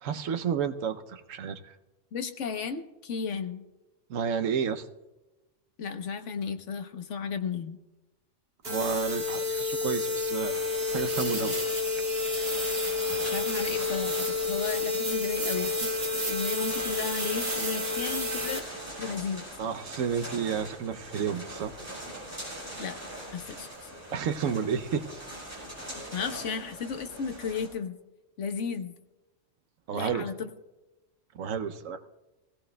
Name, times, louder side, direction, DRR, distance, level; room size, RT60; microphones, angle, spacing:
voice 1, 0.0-1.7 4.1-4.8 8.6-10.6 10.9-11.6 19.6-21.7 24.1-25.0 29.9-30.2 31.4-32.0, right 7 dB, 90° right, 9 dB, 1.1 m, -31 dB
voice 2, 2.1-3.6 5.8-7.8 13.1-19.4 22.8-23.0 23.3-23.9 26.1-28.0 28.4-29.0 29.9-30.5, left 6 dB, 70° left, 8 dB, 1.2 m, -34 dB
sound 1, 8.6-18.6, left 3 dB, 50° right, 2.2 m, -30 dB
sound 2, 10.5-27.7, right 1 dB, 10° right, 5.9 m, -42 dB
19.0 x 16.5 x 2.2 m, 1.1 s
omnidirectional pair, 1.3 m